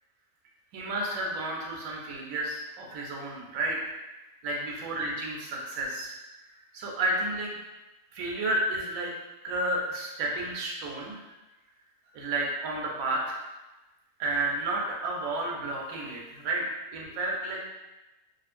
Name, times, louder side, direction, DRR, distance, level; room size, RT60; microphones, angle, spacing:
voice 1, 0.7-3.8 4.4-6.1 6.7-7.5 8.1-9.1 9.4-11.2 12.1-13.4 14.2-16.6 16.9-17.6, right 2 dB, 85° right, -2 dB, 1.0 m, -31 dB
2.7 x 2.4 x 2.4 m, 1.1 s
omnidirectional pair, 1.4 m